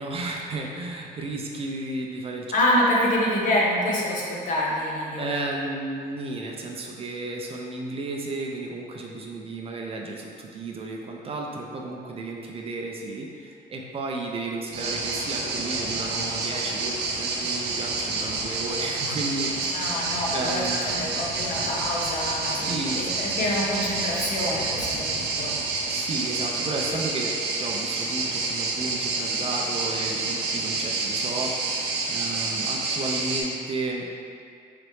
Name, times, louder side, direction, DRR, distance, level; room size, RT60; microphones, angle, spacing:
voice 1, 0.0-2.5 3.1-3.3 5.2-19.7 20.3-21.1 22.4-23.2 24.9-25.1 25.9-34.1, right 2 dB, 35° right, 0 dB, 0.4 m, -33 dB
voice 2, 2.5-5.3 19.7-25.6, left 1 dB, 50° left, -4 dB, 0.9 m, -26 dB
sound 1, 14.7-33.4, right 3 dB, 80° right, 0.6 m, -28 dB
3.9 x 3.1 x 3.1 m, 2.2 s
cardioid pair, 110°, 17 cm